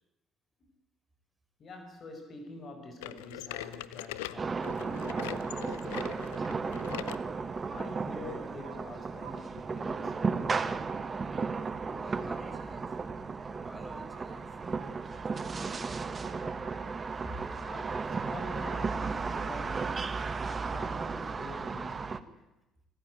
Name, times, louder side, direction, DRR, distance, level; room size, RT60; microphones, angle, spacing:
voice 1, 1.6-10.9 17.6-22.5, left 2 dB, 50° left, 6 dB, 5.2 m, -47 dB
sound 1, 3.0-7.2 7.8-7.9 8.6-8.7 9.6-9.7, left 15 dB, 85° left, 0.8 m, -41 dB
sound 2, 4.4-22.2, right 4 dB, 35° right, 1.4 m, -34 dB
sound 3, 6.7-21.5, right 8 dB, 80° right, 2.7 m, -57 dB
voice 2, 11.8-13.0 13.6-14.9 15.5-16.1 17.1-17.6, equal, 5° right, 4 dB, 6.0 m, -48 dB
26.0 x 14.5 x 9.2 m, 0.96 s
hypercardioid pair, 55°, 0 cm